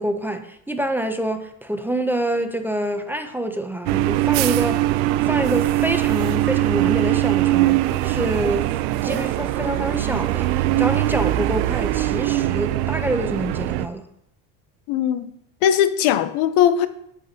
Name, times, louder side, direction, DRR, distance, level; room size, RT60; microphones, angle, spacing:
voice 1, 0.0-4.8 5.2-8.7 9.0-14.0, right 1 dB, 5° right, 0.5 m, -26 dB
sound 1, 3.9-13.9, right 16 dB, 80° right, 0.6 m, -21 dB
voice 2, 14.9-15.3 15.6-16.9, left 10 dB, 80° left, 0.8 m, -19 dB
10.5 x 7.6 x 2.8 m
cardioid pair, 125°, 41 cm